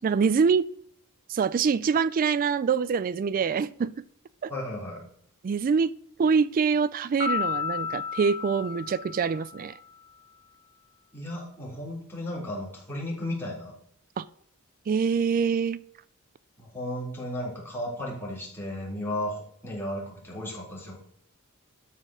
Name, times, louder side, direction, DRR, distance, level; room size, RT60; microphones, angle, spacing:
voice 1, 0.0-0.7 1.3-3.9 4.4-4.5 5.4-5.9 6.2-9.7 14.2-14.3 14.9-15.8, right 5 dB, 40° right, 18 dB, 0.3 m, -25 dB
voice 2, 4.5-5.0 11.1-13.7 16.6-21.0, left 1 dB, 10° left, -5 dB, 3.6 m, -34 dB
Piano, 7.2-9.8, left 6 dB, 45° left, 3.6 m, -32 dB
12.5 x 4.3 x 6.3 m, 0.70 s
head